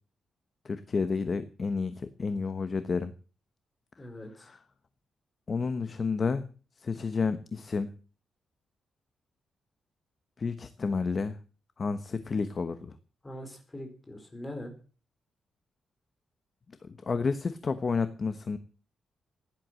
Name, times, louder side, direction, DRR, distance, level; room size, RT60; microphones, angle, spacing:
voice 1, 0.6-3.1 5.5-6.5 6.8-7.9 10.4-11.4 11.8-12.9 16.8-18.6, left 4 dB, 30° left, 10 dB, 1.1 m, -30 dB
voice 2, 4.0-4.5 13.2-14.7, left 1 dB, 10° left, 4 dB, 4.6 m, -42 dB
16.5 x 11.0 x 7.7 m, 0.38 s
wide cardioid pair, 175°, 0 cm